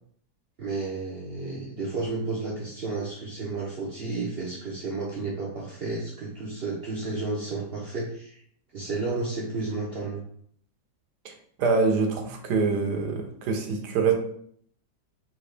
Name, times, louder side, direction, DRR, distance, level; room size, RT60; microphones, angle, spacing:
voice 1, 0.6-8.4 8.7-10.3, right 3 dB, 60° right, -4 dB, 0.6 m, -32 dB
voice 2, 11.6-14.1, right 4 dB, 75° right, 4 dB, 1.3 m, -25 dB
3.9 x 2.8 x 3.2 m, 0.63 s
omnidirectional pair, 1.8 m